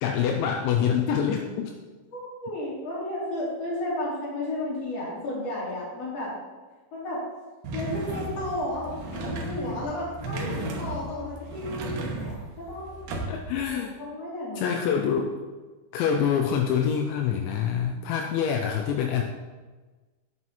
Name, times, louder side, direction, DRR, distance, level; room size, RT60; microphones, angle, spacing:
voice 1, 0.0-1.7 13.3-13.9 14.6-15.4 15.9-19.2, left 7 dB, 80° left, 2 dB, 2.9 m, -25 dB
voice 2, 2.1-6.3 6.9-7.2 7.7-12.9 13.7-14.8, left 1 dB, 40° left, -6 dB, 3.5 m, -33 dB
sound 1, 7.6-13.6, right 1 dB, 65° right, 2.0 m, -35 dB
9.3 x 7.5 x 4.2 m, 1.3 s
omnidirectional pair, 5.3 m